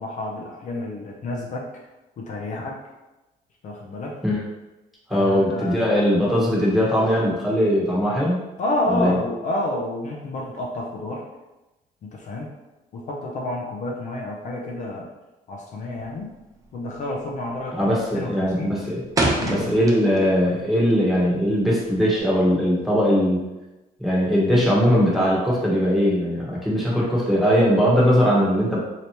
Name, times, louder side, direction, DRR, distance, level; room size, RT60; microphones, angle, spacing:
voice 1, 0.0-1.7 2.2-2.8 3.6-4.2 5.1-5.9 8.6-11.2 12.0-12.5 12.9-15.1 15.5-16.3 16.7-18.7 19.4-19.7, left 1 dB, 45° left, -1 dB, 0.5 m, -29 dB
voice 2, 5.1-8.4 8.9-9.2 17.7-19.0 19.5-23.5 24.0-28.8, equal, ahead, -6 dB, 1.1 m, -20 dB
sound 1, 15.9-16.3 16.6-17.0 17.3-17.7 18.1-20.4 20.7-22.2, right 2 dB, 20° right, 0.6 m, -26 dB
3.3 x 2.8 x 2.9 m, 1.0 s
cardioid pair, 110°, 17 cm